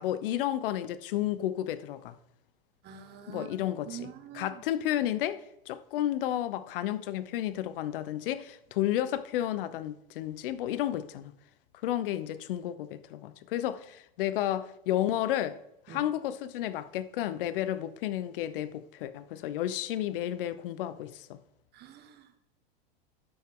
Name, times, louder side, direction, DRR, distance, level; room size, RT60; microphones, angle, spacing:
voice 1, 0.0-2.1 3.3-11.3 11.8-15.6 15.9-21.4, left 12 dB, 65° left, 0.9 m, -32 dB
voice 2, 2.8-3.5 3.8-4.6 15.9-16.0 21.7-22.4, right 9 dB, 35° right, 1.6 m, -45 dB
12.0 x 7.8 x 3.8 m
hypercardioid pair, 120°, 30 cm